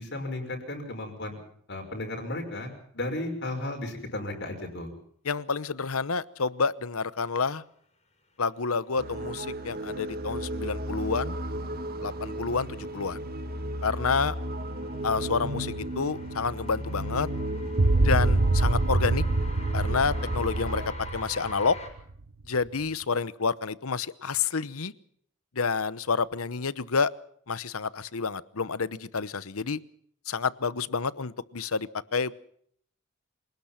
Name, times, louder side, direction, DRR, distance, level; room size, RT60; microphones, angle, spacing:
voice 1, 0.0-1.4 1.7-4.9, left 1 dB, 55° left, 3 dB, 5.8 m, -34 dB
voice 2, 5.2-7.6 8.4-11.4 12.0-13.2 13.8-14.4 15.0-17.3 18.0-19.2 19.7-21.8 22.5-24.9 25.5-27.1 27.5-29.8 30.3-32.3, left 5 dB, 75° left, 17 dB, 0.9 m, -29 dB
sound 1, 9.0-20.9, right 1 dB, 45° right, 1.6 m, -35 dB
sound 2, 9.1-21.9, left 1 dB, 30° left, 5.8 m, -45 dB
sound 3, 17.8-22.1, right 2 dB, 65° right, 1.1 m, -25 dB
27.0 x 19.0 x 5.8 m, 0.65 s
head